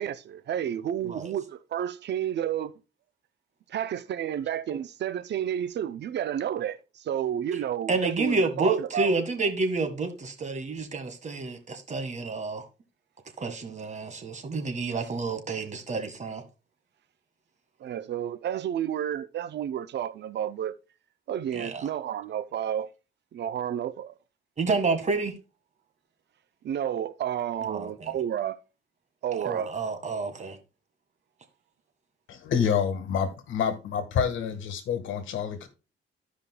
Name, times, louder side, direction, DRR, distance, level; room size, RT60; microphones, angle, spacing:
voice 1, 0.0-2.7 3.7-9.2 17.8-20.7 21.3-22.9 23.3-24.2 26.6-28.6 29.2-29.7, right 10 dB, 60° right, 0.6 m, -31 dB
voice 2, 7.9-12.7 13.4-16.4 21.5-21.9 24.6-25.3 27.6-28.1 29.4-30.6, right 3 dB, 35° right, 1.6 m, -29 dB
voice 3, 32.3-35.7, left 7 dB, 75° left, 1.5 m, -28 dB
14.5 x 5.2 x 2.2 m
cardioid pair, 90°, 20 cm